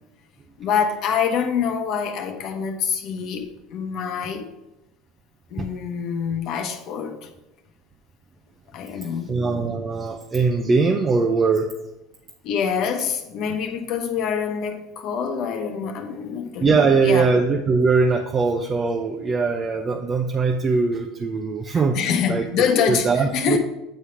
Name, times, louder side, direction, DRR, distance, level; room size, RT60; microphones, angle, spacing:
voice 1, 0.6-4.5 5.5-7.3 8.7-9.3 12.4-17.3 21.9-23.6, left 7 dB, 60° left, 5 dB, 1.0 m, -25 dB
voice 2, 9.3-11.7 16.6-22.0 22.3-22.5 22.9-23.6, right 4 dB, 30° right, 3 dB, 0.6 m, -21 dB
8.3 x 3.3 x 5.6 m, 0.95 s
supercardioid pair, 95°, 0 cm